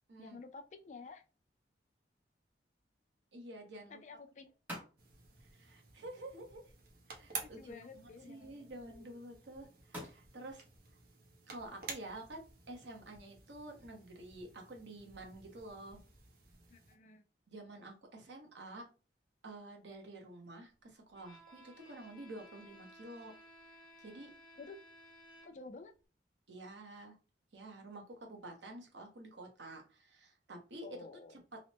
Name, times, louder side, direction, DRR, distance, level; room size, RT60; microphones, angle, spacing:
voice 1, 0.2-1.2 3.9-4.5 7.4-8.5 8.9-9.0 16.7-17.2 24.6-24.8 25.4-25.9 30.8-31.4, left 4 dB, 40° left, 7 dB, 0.4 m, -51 dB
sound 1, 0.7-13.5, equal, 10° right, 0.8 m, -57 dB
voice 2, 3.3-4.0 5.5-6.6 7.1-7.7 8.3-10.6 11.5-12.4 12.7-16.0 17.5-18.8 19.4-23.3 24.0-24.3 26.5-27.2 27.5-31.0, right 2 dB, 85° right, 2 dB, 0.8 m, -49 dB
sound 2, 5.0-16.9, right 4 dB, 55° right, 0.6 m, -52 dB
Bowed string instrument, 21.1-25.8, equal, 25° left, 0.8 m, -58 dB
3.0 x 2.1 x 2.9 m, 0.34 s
head